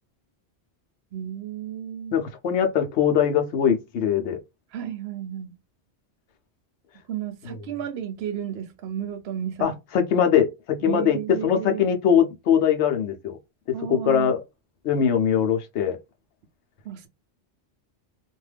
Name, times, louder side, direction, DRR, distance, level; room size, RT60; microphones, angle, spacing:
voice 1, 1.1-2.2 4.7-5.6 7.1-9.7 10.8-11.8 13.7-14.3 16.8-17.1, right 9 dB, 70° right, 0.8 m, -33 dB
voice 2, 2.1-4.4 9.6-13.4 13.9-14.4 14.8-16.0, left 8 dB, 80° left, 0.9 m, -22 dB
2.5 x 2.3 x 3.2 m
omnidirectional pair, 1.1 m